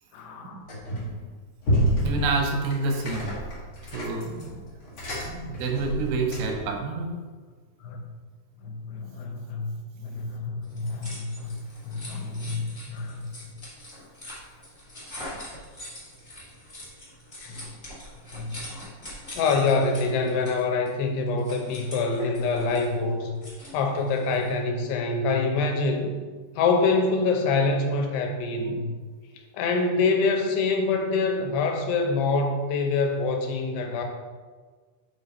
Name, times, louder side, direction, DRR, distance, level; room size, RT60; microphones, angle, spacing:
voice 1, 0.1-0.6 7.8-8.0 8.6-9.7 10.0-11.6 11.8-13.2 17.4-17.6 18.3-18.5 19.3-23.3 23.7-26.1 26.6-28.8 29.5-34.0, left 3 dB, 90° left, 3 dB, 2.9 m, -25 dB
sound 1, 0.7-1.2 1.6-6.7, equal, 65° left, 1.2 m, -29 dB
voice 2, 2.0-3.3 3.9-4.7 5.3-7.2, right 3 dB, 75° right, 2 dB, 2.1 m, -28 dB
sound 2, 10.6-24.5, left 1 dB, 35° left, 1.0 m, -43 dB
6.1 x 5.1 x 4.2 m, 1.5 s
omnidirectional pair, 4.6 m